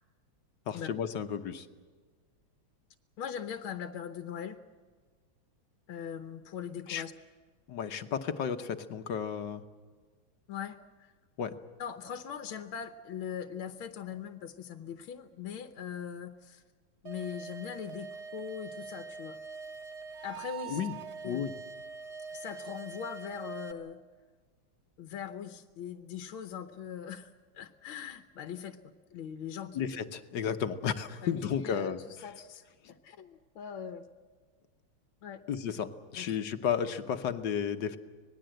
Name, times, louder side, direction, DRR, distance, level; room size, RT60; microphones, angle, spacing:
voice 1, 0.7-1.7 6.9-7.0 7.7-9.6 11.4-11.5 20.7-20.9 21.2-21.5 29.7-32.0 35.5-38.0, left 8 dB, 65° left, 9 dB, 1.6 m, -33 dB
voice 2, 3.2-4.6 5.9-7.1 10.5-11.1 11.8-16.6 17.0-19.4 20.2-20.9 21.2-21.4 22.3-24.0 25.0-29.8 31.2-32.6 32.9-34.0 35.2-35.5 36.2-36.4, left 8 dB, 80° left, 8 dB, 1.8 m, -41 dB
sound 1, 17.1-23.7, right 5 dB, 55° right, 1.9 m, -43 dB
25.5 x 19.5 x 7.8 m, 1.5 s
omnidirectional pair, 2.2 m